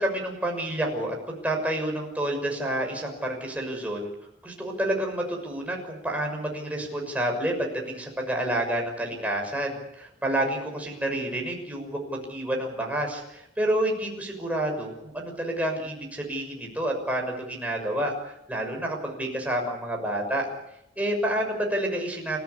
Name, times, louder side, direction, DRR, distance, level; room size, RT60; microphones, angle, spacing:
voice 1, 0.0-4.1 4.4-20.5 21.0-22.4, right 1 dB, 10° right, 1 dB, 6.4 m, -29 dB
29.5 x 14.5 x 10.0 m, 0.83 s
head